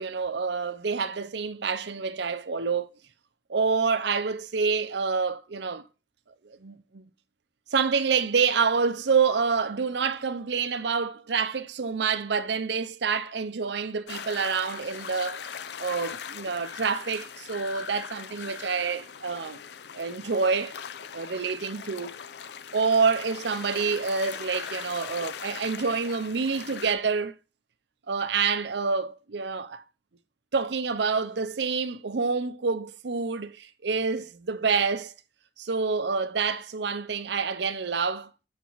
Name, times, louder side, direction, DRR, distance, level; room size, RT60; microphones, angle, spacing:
voice 1, 0.0-2.9 3.5-5.9 6.5-7.0 7.7-15.5 15.8-19.6 19.9-20.7 21.1-22.2 22.7-27.3 28.1-29.8 30.5-35.1 35.6-38.3, right 5 dB, 65° right, 0.6 m, -27 dB
sound 1, 14.1-26.9, left 7 dB, 60° left, 0.5 m, -40 dB
8.1 x 4.6 x 4.0 m
head